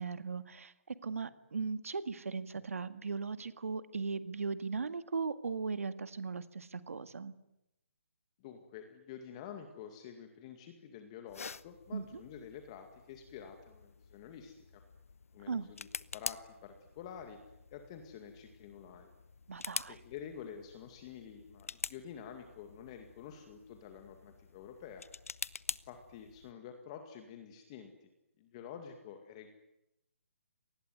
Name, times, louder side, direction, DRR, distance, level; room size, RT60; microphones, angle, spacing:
voice 1, 0.0-7.3 11.9-12.2 15.5-15.7 19.5-20.0, right 5 dB, 80° right, 12 dB, 1.9 m, -38 dB
voice 2, 8.4-14.8 15.3-17.4 17.7-19.1 19.9-25.1 25.8-28.1 28.4-29.5, left 8 dB, 25° left, 6 dB, 2.2 m, -49 dB
sound 1, 11.3-26.5, left 5 dB, 80° left, 0.9 m, -47 dB
28.0 x 19.5 x 9.5 m, 0.88 s
hypercardioid pair, 165°, 8 cm